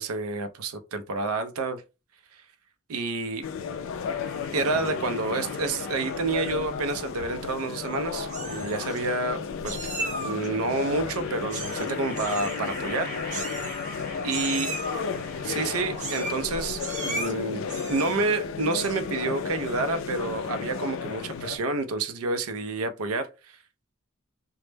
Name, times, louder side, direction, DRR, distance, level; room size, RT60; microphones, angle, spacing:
voice 1, 0.0-1.8 2.9-3.5 4.5-9.9 10.2-13.1 14.2-14.7 15.4-23.6, right 3 dB, 85° right, 0.4 m, -29 dB
sound 1, 3.4-21.6, left 6 dB, 65° left, 0.3 m, -33 dB
sound 2, 4.1-6.8 7.9-8.9 10.5-16.5, left 2 dB, 40° left, 0.7 m, -42 dB
Meow, 7.6-8.0 8.3-9.0 9.7-10.5 11.5-11.9 12.1-12.6 13.3-14.0 14.3-15.0 16.0-16.5 16.8-17.3 17.7-18.3 18.7-19.1, right 2 dB, 35° right, 0.6 m, -35 dB
2.0 x 2.0 x 3.2 m
head